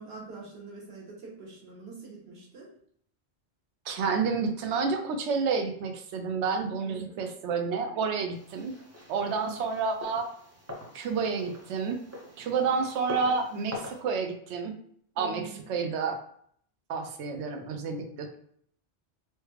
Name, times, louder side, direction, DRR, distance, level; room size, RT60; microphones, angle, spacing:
voice 1, 0.0-2.7 6.8-7.2 9.2-9.6 12.4-12.5 15.1-15.7, right 5 dB, 65° right, -4 dB, 1.3 m, -44 dB
voice 2, 3.9-8.7 9.1-10.3 10.9-12.0 12.4-14.7 15.2-16.2 16.9-18.4, right 5 dB, 85° right, 5 dB, 0.9 m, -30 dB
sound 1, 8.3-14.0, left 1 dB, 20° right, 0.4 m, -43 dB
3.2 x 2.2 x 3.2 m, 0.63 s
omnidirectional pair, 1.1 m